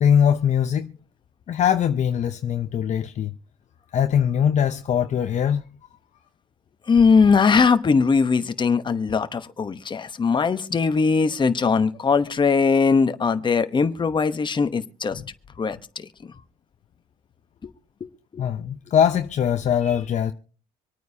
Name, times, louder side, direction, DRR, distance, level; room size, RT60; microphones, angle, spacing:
voice 1, 0.0-0.9 1.5-3.3 3.9-5.6 18.4-20.3, left 8 dB, 45° left, 0.6 m, -21 dB
voice 2, 6.9-15.2 15.6-16.0 17.6-17.7 18.0-18.4, left 5 dB, 25° left, 1.0 m, -20 dB
25.5 x 9.3 x 2.8 m
cardioid pair, 110°, 17 cm